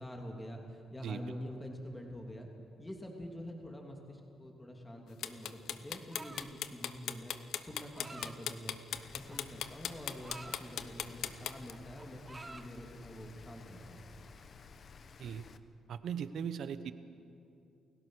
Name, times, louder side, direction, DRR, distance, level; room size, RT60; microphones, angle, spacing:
voice 1, 0.0-2.5 2.8-7.3 7.6-8.8 9.1-14.1, equal, 15° left, 1 dB, 2.9 m, -46 dB
sound 1, 5.2-11.7, left 10 dB, 75° left, 0.9 m, -38 dB
sound 2, 6.1-6.6 7.7-8.4 9.3-10.6 11.1-11.4 11.6-12.7, right 3 dB, 20° right, 1.3 m, -50 dB
Rain, 8.9-15.6, left 5 dB, 50° left, 1.1 m, -54 dB
voice 2, 15.9-16.9, right 7 dB, 70° right, 12 dB, 1.1 m, -38 dB
29.5 x 16.5 x 6.4 m, 2.7 s
cardioid pair, 90°, 0 cm